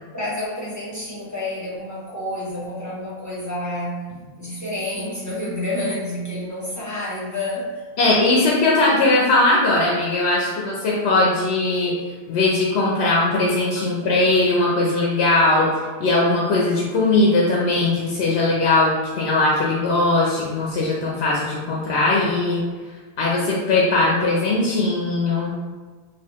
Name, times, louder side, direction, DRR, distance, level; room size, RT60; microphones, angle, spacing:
voice 1, 0.1-4.0 4.4-7.8, left 1 dB, 20° left, -9 dB, 0.7 m, -29 dB
voice 2, 8.0-11.9 12.3-15.7 16.0-22.6 23.2-25.6, left 2 dB, 80° left, -4 dB, 0.9 m, -19 dB
4.0 x 2.4 x 2.9 m, 1.4 s
omnidirectional pair, 1.1 m